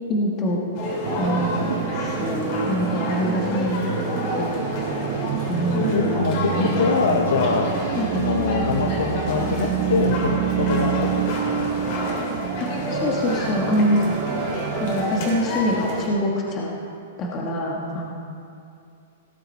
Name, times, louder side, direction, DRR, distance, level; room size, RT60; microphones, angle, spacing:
voice 1, 0.1-0.6 1.2-1.7 2.0-4.5 5.5-6.1 6.5-6.7 7.9-8.1 12.6-14.0 14.8-16.7 17.2-18.1, equal, 25° left, -2 dB, 1.5 m, -25 dB
sound 1, 0.7-16.1, left 2 dB, 45° left, 3.3 m, -29 dB
sound 2, 1.0-15.4, right 10 dB, 40° right, 0.6 m, -28 dB
voice 2, 5.6-7.7 8.1-11.1 11.4-11.7, left 5 dB, 90° left, 4 dB, 1.0 m, -24 dB
18.0 x 8.0 x 4.2 m, 2.5 s
hypercardioid pair, 150°, 0 cm